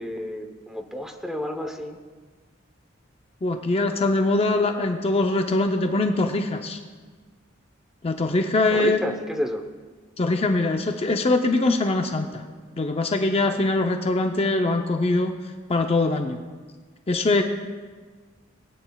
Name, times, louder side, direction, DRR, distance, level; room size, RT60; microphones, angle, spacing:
voice 1, 0.0-2.0 8.7-9.6, equal, 5° right, 4 dB, 0.8 m, -30 dB
voice 2, 3.4-6.8 8.0-9.0 10.2-12.4 12.8-15.3 15.7-16.4 17.1-17.4, left 2 dB, 30° left, 5 dB, 0.5 m, -22 dB
19.5 x 9.3 x 2.3 m, 1.5 s
head